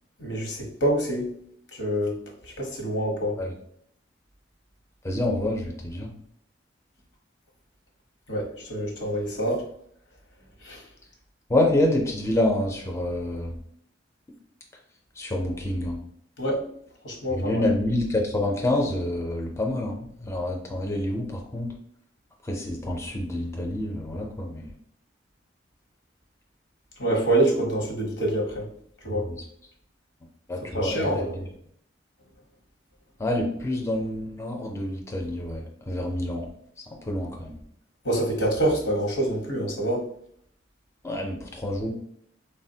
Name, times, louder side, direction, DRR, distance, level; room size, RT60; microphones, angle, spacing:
voice 1, 0.2-1.3 1.7-2.2 2.4-3.4 8.3-9.6 10.6-10.8 16.4-16.6 17.0-17.6 27.0-28.7 29.0-29.2 30.7-31.4 38.0-40.0, right 1 dB, 85° left, 0 dB, 1.0 m, -26 dB
voice 2, 5.0-6.1 11.5-13.6 15.2-16.0 17.3-21.7 22.4-24.7 29.3-29.4 30.5-31.4 33.2-36.5 37.1-37.5 41.0-41.9, left 1 dB, 15° left, 1 dB, 0.4 m, -27 dB
3.7 x 2.1 x 2.6 m, 0.69 s
head